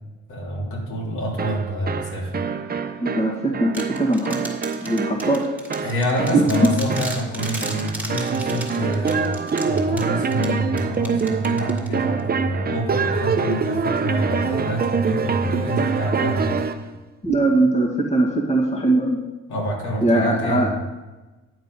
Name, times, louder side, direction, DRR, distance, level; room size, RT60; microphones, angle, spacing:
voice 1, 0.3-2.3 5.8-9.2 9.6-16.5 19.5-20.7, equal, 75° left, -3 dB, 3.6 m, -26 dB
sound 1, 1.4-16.9, right 5 dB, 30° right, 0.7 m, -25 dB
voice 2, 3.0-4.4 4.8-5.4 6.3-6.7 17.2-19.2 20.0-20.7, right 2 dB, 20° left, -1 dB, 1.9 m, -20 dB
sound 2, 3.7-12.2, right 1 dB, 5° right, 2.3 m, -36 dB
10.0 x 7.4 x 5.5 m, 1.2 s
cardioid pair, 90°, 30 cm